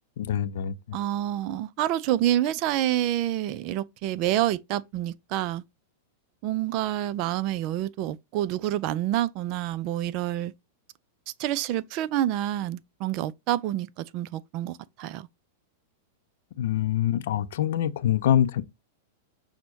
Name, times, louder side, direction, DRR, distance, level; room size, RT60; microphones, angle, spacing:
voice 1, 0.2-0.7 16.6-18.6, left 10 dB, 65° left, 0.5 m, -25 dB
voice 2, 0.9-5.6 6.4-10.5 11.4-15.3, right 13 dB, 50° right, 0.3 m, -28 dB
6.0 x 2.1 x 3.9 m
hypercardioid pair, 105°, 0 cm